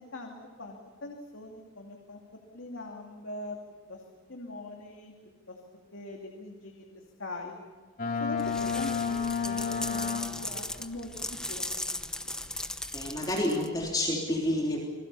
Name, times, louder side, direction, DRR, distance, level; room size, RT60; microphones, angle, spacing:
voice 1, 0.0-2.2 2.5-3.6 3.9-4.0 4.3-5.1 5.5-5.6 5.9-7.5 8.2-8.4 8.7-12.6, left 2 dB, 70° left, 1 dB, 2.8 m, -42 dB
Boat Water vehicle, 8.0-10.7, left 6 dB, 45° left, 2.6 m, -31 dB
sound 1, 8.4-13.9, left 1 dB, 5° left, 0.9 m, -38 dB
voice 2, 12.9-14.8, left 1 dB, 20° left, -1 dB, 3.5 m, -29 dB
28.5 x 21.0 x 7.1 m, 1.5 s
head